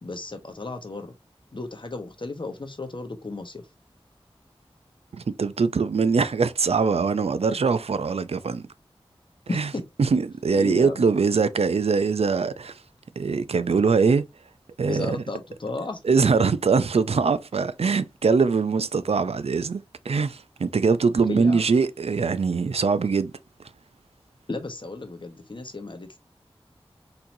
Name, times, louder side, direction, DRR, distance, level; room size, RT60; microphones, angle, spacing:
voice 1, 0.0-1.1 1.5-3.6 9.5-9.8 10.5-11.0 14.9-16.0 21.3-21.6 24.5-26.1, left 3 dB, 55° left, 1.2 m, -34 dB
voice 2, 5.1-8.6 9.5-9.7 10.0-12.8 13.2-14.2 14.8-15.2 16.0-23.3, right 5 dB, 85° right, 0.5 m, -22 dB
4.4 x 3.9 x 2.7 m
wide cardioid pair, 50°, 10 cm